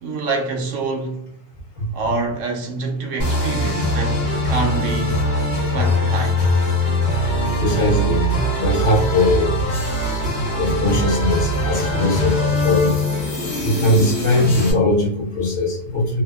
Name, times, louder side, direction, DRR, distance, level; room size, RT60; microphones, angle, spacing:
voice 1, 0.0-1.3 1.9-5.3 5.7-6.4, right 3 dB, 70° right, 0.9 m, -26 dB
sound 1, 3.2-14.7, equal, 50° left, 1.2 m, -21 dB
voice 2, 7.6-8.3 8.6-9.6 10.5-13.0 13.6-16.2, left 2 dB, 30° left, 0.7 m, -20 dB
2.7 x 2.2 x 2.2 m
omnidirectional pair, 1.4 m